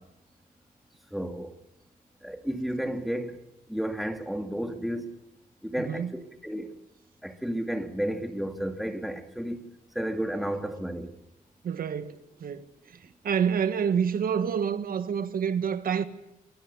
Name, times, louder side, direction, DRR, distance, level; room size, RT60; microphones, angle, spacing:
voice 1, 1.1-1.6 2.2-3.4 3.7-5.1 5.6-6.8 7.2-9.7 9.9-11.1, equal, ahead, 2.2 m, -32 dB
voice 2, 5.8-6.1 11.6-16.0, right 7 dB, 70° right, 1.6 m, -28 dB
22.0 x 21.5 x 7.0 m
wide cardioid pair, 125°, 16 cm